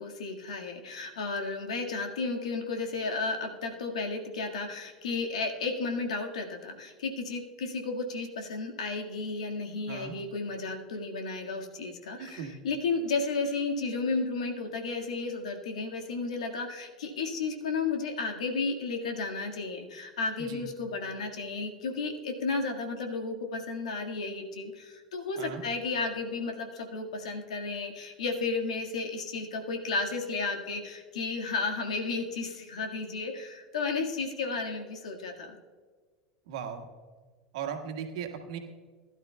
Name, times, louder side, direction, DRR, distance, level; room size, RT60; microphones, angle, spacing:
voice 1, 0.0-35.6, left 3 dB, 80° left, 3 dB, 1.7 m, -33 dB
voice 2, 12.2-12.5 20.4-20.7 25.4-25.6 36.5-36.8 37.5-38.6, right 7 dB, 70° right, 4 dB, 1.6 m, -37 dB
20.5 x 12.0 x 2.2 m, 1.5 s
hypercardioid pair, 85°, 4 cm